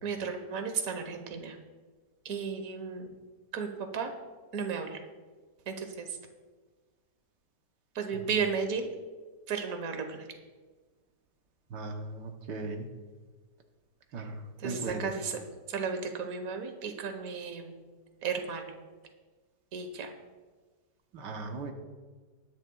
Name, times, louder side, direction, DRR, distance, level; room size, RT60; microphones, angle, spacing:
voice 1, 0.0-1.6 2.2-3.1 3.5-4.1 4.5-5.0 5.7-6.1 7.9-8.9 9.5-10.3 14.6-15.4 15.7-17.8 18.2-18.7 19.7-20.1, right 5 dB, 55° right, 6 dB, 1.6 m, -34 dB
voice 2, 11.7-12.9 14.1-15.2 21.1-21.7, right 3 dB, 80° right, 3 dB, 1.7 m, -38 dB
20.5 x 10.5 x 2.4 m, 1.4 s
omnidirectional pair, 1.9 m